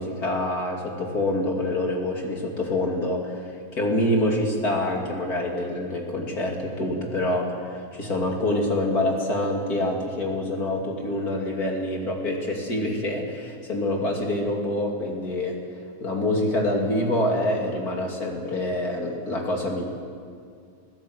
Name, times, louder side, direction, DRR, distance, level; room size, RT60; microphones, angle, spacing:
voice 1, 0.0-15.6 16.0-19.8, left 1 dB, 25° left, 0 dB, 2.7 m, -26 dB
26.0 x 16.0 x 8.1 m, 2.2 s
omnidirectional pair, 4.5 m